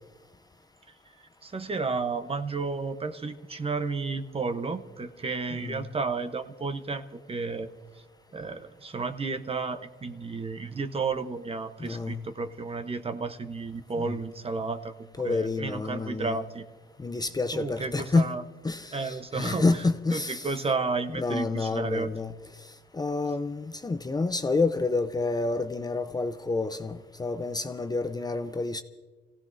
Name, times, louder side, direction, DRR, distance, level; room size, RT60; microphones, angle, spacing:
voice 1, 1.4-7.7 8.3-16.6 17.5-18.4 18.9-19.6 20.1-22.1, right 4 dB, 30° right, 0.9 m, -32 dB
voice 2, 5.5-5.9 11.8-12.2 13.9-14.2 15.2-16.4 17.0-18.3 18.6-20.6 21.1-22.3 22.9-28.8, left 3 dB, 20° left, 0.6 m, -29 dB
29.0 x 16.5 x 2.7 m
cardioid pair, 90°, 20 cm